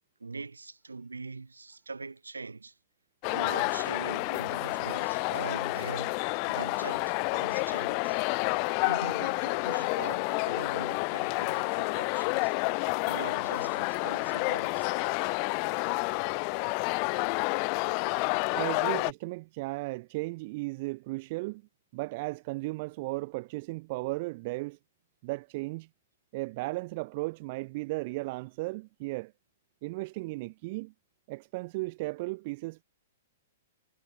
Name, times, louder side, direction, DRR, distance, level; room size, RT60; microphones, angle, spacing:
voice 1, 0.2-2.8 3.3-6.2 6.5-8.2 8.8-12.5 13.0-14.9, right 4 dB, 75° right, 7.3 m, -42 dB
sound 1, 3.2-19.1, left 40 dB or more, 35° left, 0.3 m, -29 dB
voice 2, 18.5-21.6 21.9-24.8 25.2-25.9 26.3-29.3 29.8-30.9 31.3-32.8, right 23 dB, 40° right, 1.2 m, -35 dB
figure-of-eight pair, 110°, 0 cm